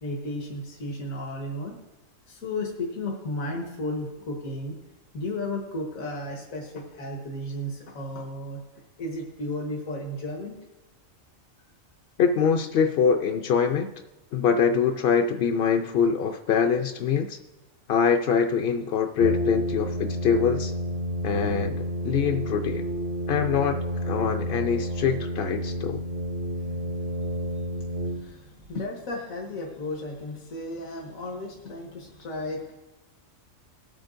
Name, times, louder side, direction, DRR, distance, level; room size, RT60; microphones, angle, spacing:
voice 1, 0.0-1.8 2.3-4.8 5.1-8.6 9.0-10.5 26.6-27.6 28.0-32.8, left 1 dB, 85° left, 1 dB, 1.8 m, -34 dB
voice 2, 12.2-13.9 14.3-17.4 17.9-20.7 21.2-21.7 22.0-22.8 23.3-26.0, left 6 dB, 60° left, 5 dB, 0.6 m, -24 dB
Brass instrument, 19.2-28.7, equal, 55° right, 0.7 m, -30 dB
19.0 x 8.7 x 2.6 m, 1.1 s
omnidirectional pair, 1.4 m